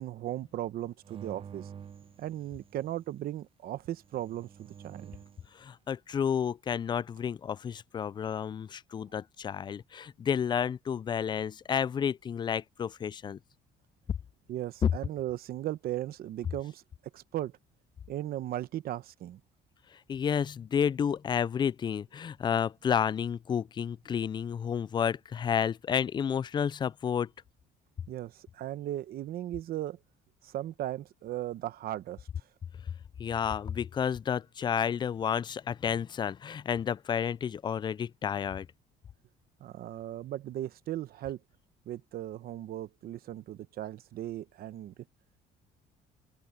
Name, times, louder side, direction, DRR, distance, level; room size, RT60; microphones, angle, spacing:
voice 1, 0.0-1.7 2.2-5.1 14.5-16.8 17.1-17.5 18.1-19.4 28.1-30.0 30.4-32.3 39.6-41.4 41.9-44.9, right 13 dB, 65° right, 0.9 m, -37 dB
sound 1, 1.0-3.0 4.0-5.5, right 8 dB, 30° right, 0.6 m, -48 dB
voice 2, 5.5-13.4 14.8-14.9 20.1-27.3 33.2-38.7, left 7 dB, 25° left, 0.3 m, -31 dB
open air
cardioid pair, 110°, 17 cm